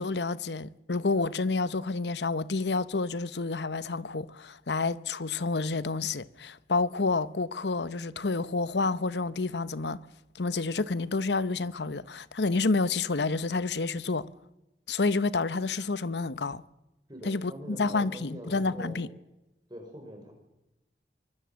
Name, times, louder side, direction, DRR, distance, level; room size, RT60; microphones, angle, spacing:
voice 1, 0.0-10.0 10.3-14.3 14.9-16.6 17.2-19.1, left 3 dB, 80° left, 0.9 m, -29 dB
voice 2, 17.1-19.0 19.7-20.3, equal, 25° right, 6.0 m, -43 dB
24.5 x 22.0 x 7.5 m
head